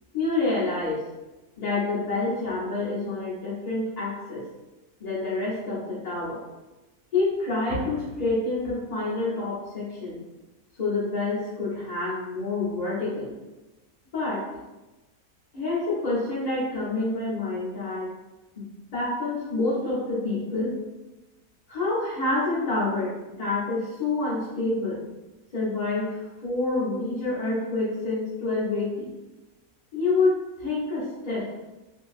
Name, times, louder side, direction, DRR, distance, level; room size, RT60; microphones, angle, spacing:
voice 1, 0.1-1.0 1.6-4.4 5.0-6.4 7.1-10.2 10.8-13.3 14.1-14.5 15.5-18.1 18.6-18.7 18.9-20.7 21.7-25.0 25.5-29.1 29.9-31.5, left 3 dB, 45° left, -9 dB, 0.6 m, -27 dB
2.8 x 2.6 x 2.4 m, 1.1 s
omnidirectional pair, 1.5 m